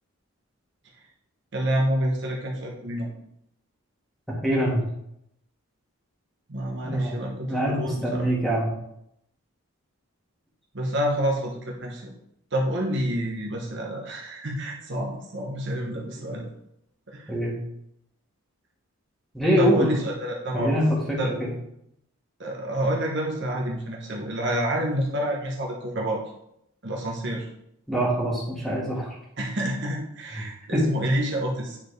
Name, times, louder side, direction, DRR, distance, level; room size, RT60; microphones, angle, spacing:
voice 1, 1.5-3.1 6.5-8.3 10.7-12.1 12.5-16.5 17.1-17.3 19.6-20.7 21.2-21.3 22.4-26.2 26.8-27.5 29.4-31.8, right 1 dB, 55° right, -1 dB, 1.0 m, -28 dB
voice 2, 4.4-4.8 6.8-7.2 7.5-8.7 17.3-17.5 19.3-19.9 20.5-21.5 27.9-29.2 30.3-30.4 30.7-30.9, equal, ahead, -4 dB, 1.6 m, -24 dB
8.7 x 4.3 x 3.3 m, 0.77 s
head